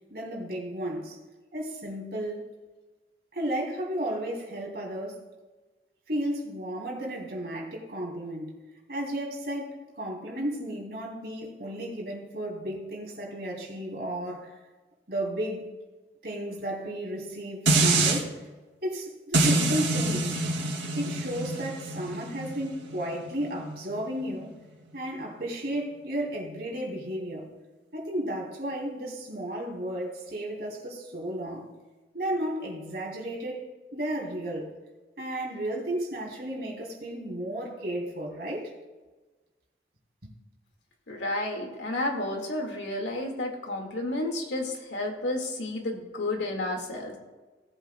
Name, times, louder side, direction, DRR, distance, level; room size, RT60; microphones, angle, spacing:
voice 1, 0.1-1.2 1.5-2.5 3.3-5.2 6.1-8.6 8.9-14.5 15.1-15.7 16.2-18.4 18.8-20.3 20.9-24.6 24.9-27.5 27.9-31.7 32.1-34.7 35.2-38.7 40.2-40.3, right 1 dB, 60° right, -2 dB, 3.2 m, -33 dB
sound 1, 17.7-18.2 19.3-24.5 24.9-25.0, right 2 dB, 85° right, 2.5 m, -26 dB
voice 2, 41.1-47.2, left 2 dB, 85° left, 2 dB, 2.1 m, -31 dB
18.0 x 8.2 x 2.3 m, 1.2 s
head